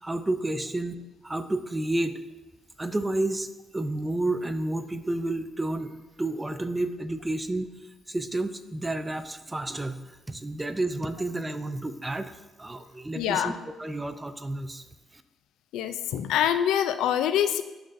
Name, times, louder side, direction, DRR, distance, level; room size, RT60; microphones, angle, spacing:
voice 1, 0.0-2.2 2.8-5.9 6.2-7.7 8.1-10.0 10.3-13.5 13.8-14.8, right 2 dB, 15° right, 10 dB, 0.5 m, -30 dB
voice 2, 13.2-13.5 15.7-17.6, left 10 dB, 90° left, 11 dB, 0.3 m, -25 dB
11.0 x 3.9 x 2.6 m, 1.1 s
cardioid pair, 90°, 0 cm